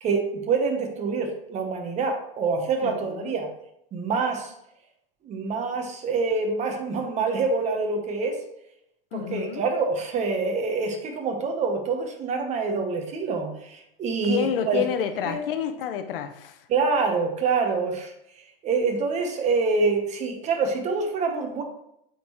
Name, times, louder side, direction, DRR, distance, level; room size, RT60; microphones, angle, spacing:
voice 1, 0.0-3.5 3.9-4.5 5.2-8.4 9.1-14.8 15.3-15.4 16.7-18.1 18.6-21.6, right 4 dB, 25° right, 1.0 m, -26 dB
voice 2, 2.8-3.4 9.1-9.6 14.2-16.6, left 9 dB, 70° left, 0.8 m, -29 dB
8.4 x 3.9 x 3.1 m
supercardioid pair, 140°, 29 cm